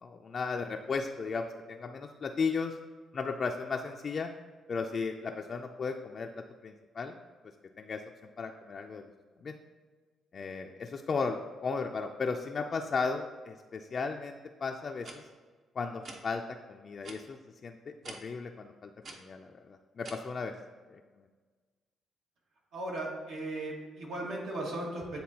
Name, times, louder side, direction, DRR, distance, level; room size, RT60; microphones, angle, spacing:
voice 1, 0.0-2.7 3.1-4.3 4.7-6.3 6.6-7.1 7.8-8.0 8.4-9.1 9.4-9.5 10.3-15.1 15.8-16.4 16.7-20.5 20.9-21.0, left 4 dB, 45° left, 3 dB, 0.4 m, -35 dB
sound 1, 15.0-15.2 16.0-16.2 17.0-17.2 18.0-18.2 19.0-19.2 20.0-20.1, right 3 dB, 55° right, 0.9 m, -44 dB
voice 2, 22.7-25.2, right 1 dB, 80° right, -3 dB, 1.7 m, -37 dB
9.3 x 3.8 x 2.8 m, 1.4 s
cardioid pair, 90°, 0 cm